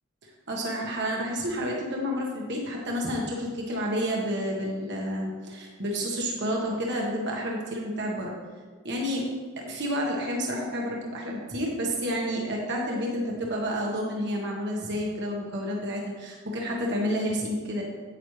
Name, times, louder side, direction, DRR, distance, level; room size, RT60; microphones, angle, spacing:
voice 1, 0.2-8.3 8.8-9.3 9.7-17.8, equal, 50° right, -1 dB, 1.3 m, -30 dB
9.4 x 8.9 x 3.2 m, 1.5 s
head